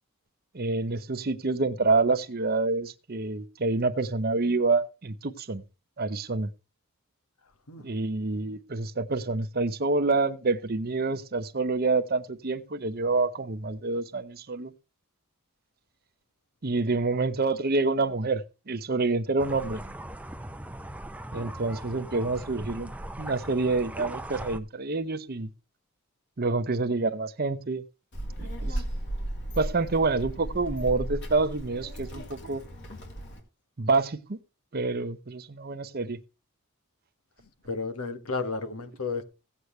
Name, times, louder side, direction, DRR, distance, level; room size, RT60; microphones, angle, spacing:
voice 1, 0.5-5.6 6.0-6.5 7.8-14.7 16.6-19.8 21.3-22.9 23.2-25.5 26.4-27.8 28.4-28.8 29.6-32.6 33.8-34.4 34.7-36.2, right 3 dB, 45° right, 0.8 m, -27 dB
sound 1, 19.4-24.6, right 1 dB, 5° right, 0.5 m, -39 dB
Child speech kid speaking, 28.1-33.4, right 1 dB, 50° left, 3.0 m, -35 dB
voice 2, 37.6-39.2, left 4 dB, 80° left, 1.5 m, -32 dB
16.5 x 8.1 x 3.2 m
head